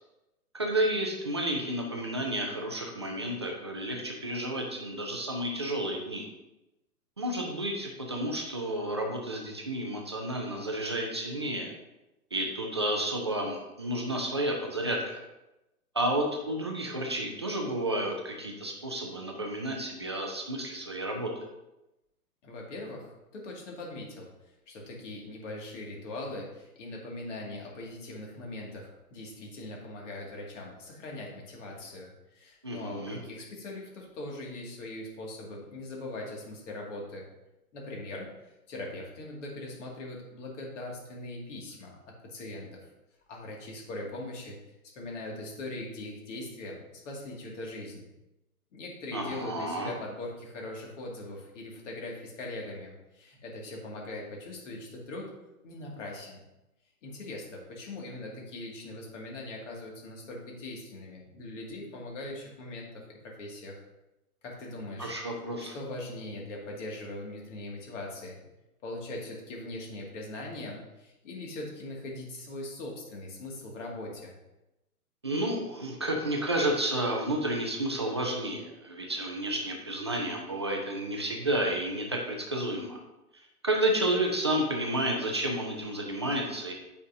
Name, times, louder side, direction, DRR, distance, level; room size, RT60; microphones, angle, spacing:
voice 1, 0.5-6.3 7.2-11.7 12.3-15.2 15.9-21.5 32.6-33.2 49.1-49.9 65.0-65.8 75.2-83.0 83.6-86.7, right 1 dB, 20° right, 0 dB, 0.3 m, -31 dB
voice 2, 22.4-24.3 24.7-37.3 37.7-38.3 38.7-42.8 43.3-44.6 44.9-48.1 48.7-55.3 55.6-56.4 57.0-63.8 64.4-65.1 65.6-68.4 68.8-74.3, left 2 dB, 50° left, -1 dB, 2.2 m, -41 dB
8.6 x 5.5 x 2.7 m, 0.96 s
hypercardioid pair, 130°, 46 cm